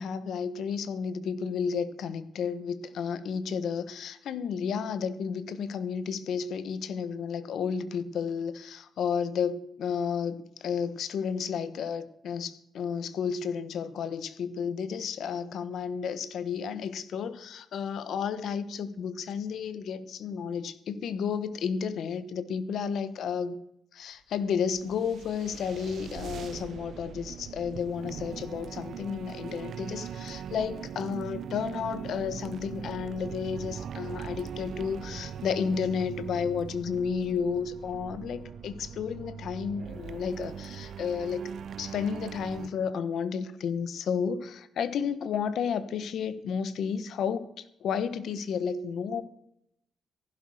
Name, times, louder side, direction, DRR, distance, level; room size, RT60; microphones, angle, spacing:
voice 1, 0.0-23.6 23.9-41.5 41.8-49.2, left 6 dB, 75° left, 14 dB, 1.2 m, -32 dB
sound 1, 24.4-42.7, right 8 dB, 70° right, 0.7 m, -41 dB
15.0 x 12.0 x 6.4 m, 0.77 s
cardioid pair, 85°, 0 cm